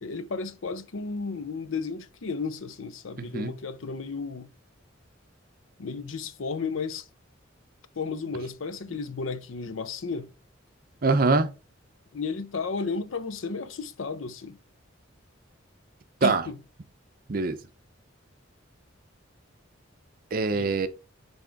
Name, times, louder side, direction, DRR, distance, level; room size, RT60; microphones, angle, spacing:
voice 1, 0.0-4.5 5.8-7.1 8.0-10.3 12.1-14.6 16.2-16.6 20.5-20.7, left 4 dB, 80° left, 0.6 m, -33 dB
voice 2, 3.2-3.5 11.0-11.5 16.2-16.4 17.3-17.6 20.3-20.9, right 3 dB, 45° right, 0.6 m, -23 dB
6.1 x 3.5 x 4.6 m
head